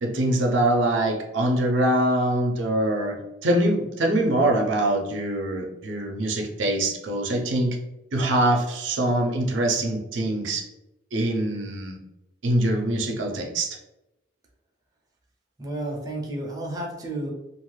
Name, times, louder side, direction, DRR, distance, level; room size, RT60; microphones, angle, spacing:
voice 1, 0.0-3.2 3.4-7.8 8.1-10.6 11.1-12.0 12.4-13.8, right 1 dB, 90° right, 1 dB, 0.5 m, -23 dB
voice 2, 15.6-17.3, right 1 dB, 20° right, -2 dB, 0.5 m, -31 dB
2.5 x 2.3 x 3.1 m, 0.93 s
head